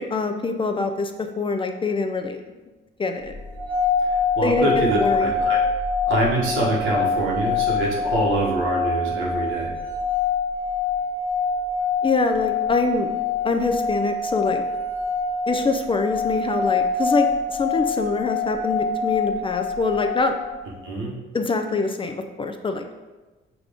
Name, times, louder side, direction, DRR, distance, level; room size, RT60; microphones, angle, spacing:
voice 1, 0.1-1.1 1.4-2.4 3.0-3.3 4.4-5.3 12.0-13.1 13.4-14.6 15.5-20.3 21.3-22.9, left 3 dB, 25° left, 5 dB, 0.4 m, -24 dB
sound 1, 3.4-20.6, left 4 dB, 10° left, 0.9 m, -25 dB
voice 2, 4.1-5.6 6.1-9.7 20.8-21.2, right 1 dB, 85° right, -3 dB, 1.2 m, -25 dB
5.8 x 2.5 x 3.5 m, 1.2 s
cardioid pair, 90°, 20 cm